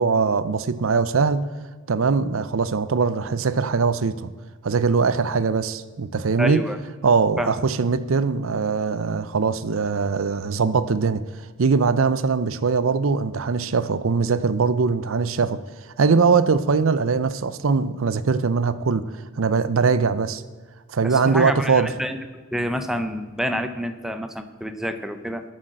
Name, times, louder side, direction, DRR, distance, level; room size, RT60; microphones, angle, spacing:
voice 1, 0.0-1.5 1.9-4.3 4.6-6.6 7.0-11.2 11.6-15.6 16.0-19.1 19.4-20.4 20.9-21.9, right 5 dB, 65° right, 14 dB, 0.6 m, -21 dB
voice 2, 6.4-6.8 7.4-7.5 21.0-22.2 22.5-25.4, equal, ahead, 7 dB, 0.6 m, -27 dB
12.0 x 6.3 x 7.6 m, 1.4 s
head